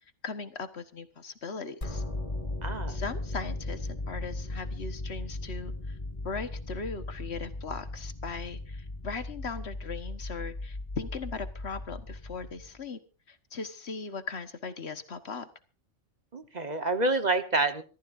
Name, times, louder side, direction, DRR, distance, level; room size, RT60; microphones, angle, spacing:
voice 1, 0.2-2.0 2.9-6.0 6.2-13.0 13.3-15.5, left 4 dB, 60° left, 10 dB, 1.6 m, -38 dB
sound 1, 1.8-12.8, left 2 dB, 30° left, 1.8 m, -37 dB
voice 2, 2.6-3.0 16.3-17.8, right 2 dB, 35° right, 9 dB, 1.2 m, -28 dB
26.0 x 14.0 x 2.6 m, 0.35 s
omnidirectional pair, 1.3 m